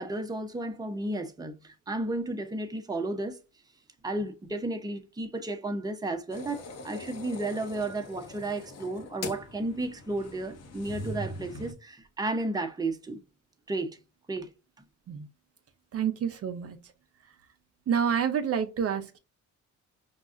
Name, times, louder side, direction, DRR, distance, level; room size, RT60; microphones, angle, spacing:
voice 1, 0.0-3.4 4.0-13.2 13.7-14.0 14.3-14.5, right 2 dB, 15° right, 0.7 m, -33 dB
sound 1, 6.3-11.7, left 2 dB, 55° left, 1.0 m, -41 dB
voice 2, 15.9-16.9 17.9-19.2, right 7 dB, 50° right, 0.6 m, -28 dB
5.2 x 2.3 x 2.5 m
cardioid pair, 90°, 30 cm